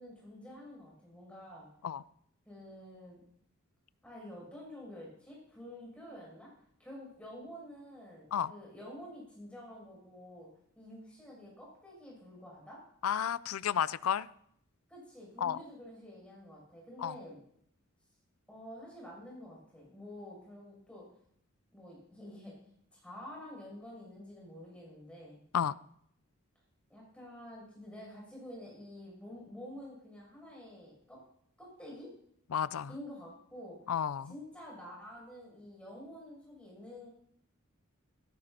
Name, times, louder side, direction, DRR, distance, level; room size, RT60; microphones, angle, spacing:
voice 1, 0.0-1.7 2.5-3.2 4.0-6.5 6.8-10.5 10.8-12.8 14.9-17.4 18.5-21.1 21.7-22.5 22.9-25.5 26.9-31.2 31.6-32.1 32.9-33.8 34.2-37.1, left 1 dB, 5° left, 7.3 m, -49 dB
voice 2, 13.0-14.3 15.4-15.6 17.0-17.2 25.5-25.7 32.5-32.9 33.9-34.3, left 8 dB, 85° left, 0.4 m, -32 dB
17.5 x 16.5 x 2.9 m
head